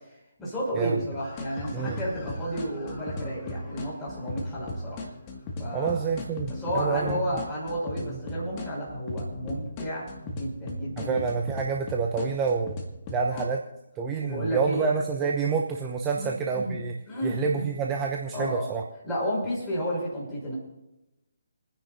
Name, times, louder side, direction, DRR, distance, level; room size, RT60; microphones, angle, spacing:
voice 1, 0.4-5.0 5.6-6.0 6.6-11.2 12.2-12.3 13.3-13.5 14.2-14.9 16.2-16.8 17.1-17.7 18.3-18.7 19.0-20.5, equal, 10° left, -7 dB, 6.0 m, -32 dB
sound 1, 1.2-13.5, left 1 dB, 25° left, 1.9 m, -37 dB
voice 2, 5.7-7.2 11.0-12.8 13.1-13.6 14.0-16.9 17.2-18.8, right 5 dB, 15° right, 1 dB, 0.9 m, -28 dB
29.5 x 10.0 x 2.7 m, 0.95 s
figure-of-eight pair, 145°, 0 cm